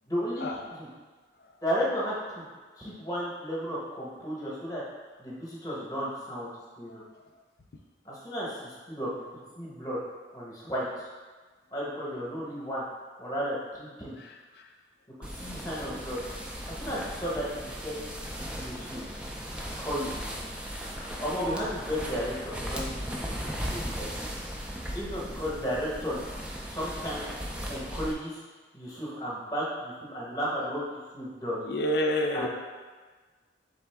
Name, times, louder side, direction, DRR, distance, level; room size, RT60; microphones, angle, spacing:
voice 1, 0.1-0.9 1.6-2.5 2.8-4.8 5.2-6.5 6.8-7.0 8.0-10.0 10.3-11.1 11.7-12.8 13.2-14.2 15.2-16.2 16.7-18.0 18.5-19.0 19.8-20.3 20.9-23.3 23.7-24.3 24.9-26.3 26.6-27.2 27.7-28.4 28.7-31.6 32.3-32.5, equal, 20° left, -6 dB, 0.9 m, -34 dB
voice 2, 14.2-14.6 31.7-32.5, left 1 dB, 60° left, 3 dB, 0.4 m, -29 dB
sound 1, 15.2-28.1, equal, 5° right, 0.3 m, -37 dB
4.2 x 3.5 x 3.4 m, 1.4 s
head